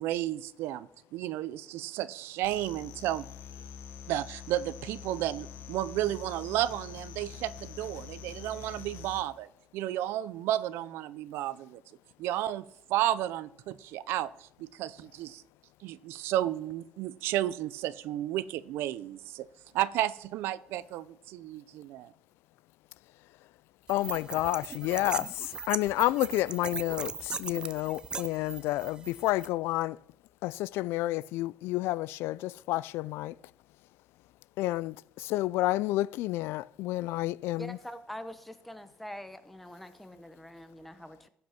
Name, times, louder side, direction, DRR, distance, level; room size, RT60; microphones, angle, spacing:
voice 1, 0.0-3.3 4.1-9.5 9.7-11.8 12.2-12.6 12.9-15.4 15.8-19.5 19.7-22.1, right 13 dB, 85° right, 0.5 m, -32 dB
sound 1, 2.4-9.2, left 8 dB, 70° left, 1.2 m, -45 dB
voice 2, 23.9-30.0 30.4-33.3 34.6-37.8, left 17 dB, 90° left, 0.3 m, -30 dB
sound 2, 23.9-29.5, right 4 dB, 20° right, 0.5 m, -38 dB
voice 3, 37.6-41.3, equal, 5° left, 0.8 m, -44 dB
15.5 x 5.8 x 5.8 m
cardioid pair, 145°, 4 cm